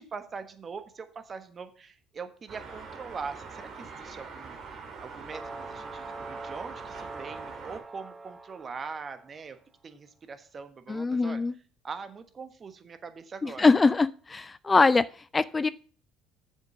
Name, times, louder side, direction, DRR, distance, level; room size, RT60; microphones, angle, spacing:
voice 1, 0.0-9.6 9.8-11.4 11.8-13.7, right 5 dB, 40° right, 9 dB, 1.3 m, -42 dB
sound 1, 2.5-7.8, right 4 dB, 55° right, 2.4 m, -44 dB
sound 2, 5.3-9.4, right 3 dB, 20° right, 0.8 m, -43 dB
voice 2, 10.9-11.5 13.4-15.7, left 4 dB, 25° left, 17 dB, 0.4 m, -23 dB
7.2 x 6.6 x 5.9 m, 0.43 s
hypercardioid pair, 65°, 0 cm